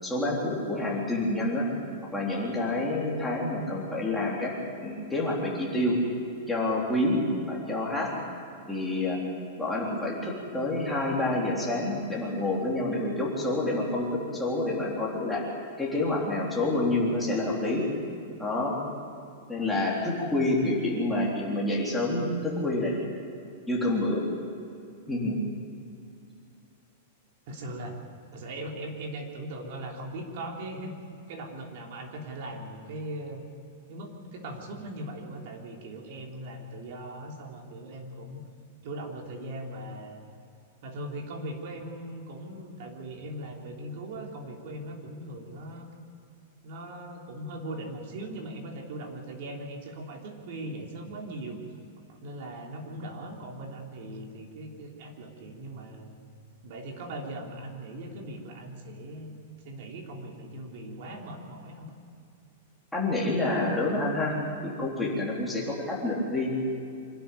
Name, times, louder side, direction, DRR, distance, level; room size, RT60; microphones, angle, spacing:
voice 1, 0.0-1.7 2.1-4.5 4.8-6.0 6.5-8.1 8.7-9.2 9.6-15.5 15.8-17.9 18.4-18.8 19.5-22.9 23.7-24.2 25.1-25.4 62.9-66.5, left 2 dB, 5° left, -5 dB, 3.6 m, -28 dB
voice 2, 27.5-28.0 28.3-30.9 31.3-33.5 33.9-38.4 38.8-40.2 40.8-45.9 46.6-51.6 52.1-56.2 56.6-59.3 59.6-61.8, right 1 dB, 50° right, 1 dB, 3.4 m, -39 dB
25.5 x 12.5 x 9.3 m, 2.6 s
supercardioid pair, 165°, 0 cm